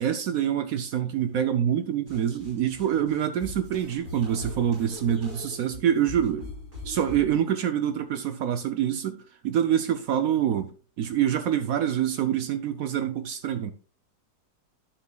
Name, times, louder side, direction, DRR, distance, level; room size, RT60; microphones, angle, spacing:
voice 1, 0.0-6.5 6.8-10.7 11.0-13.7, right 9 dB, 70° right, 0.9 m, -26 dB
sound 1, 2.1-7.4, left 2 dB, 50° right, 5.6 m, -41 dB
11.5 x 7.0 x 2.3 m
omnidirectional pair, 2.0 m